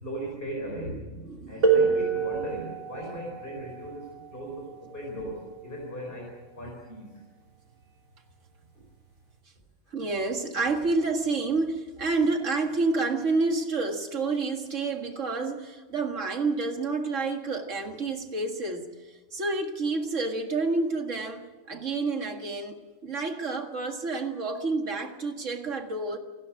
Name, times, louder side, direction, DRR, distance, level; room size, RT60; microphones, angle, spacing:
voice 1, 0.0-1.0 1.5-7.1, equal, 40° left, -1 dB, 4.8 m, -38 dB
voice 2, 0.8-2.0 2.6-2.7 9.9-18.9 19.3-26.2, right 3 dB, 65° right, 5 dB, 2.2 m, -29 dB
sound 1, 1.6-7.1 8.1-8.2 9.0-9.3, right 5 dB, 80° right, 4.0 m, -29 dB
28.5 x 12.0 x 8.8 m, 1.3 s
omnidirectional pair, 1.4 m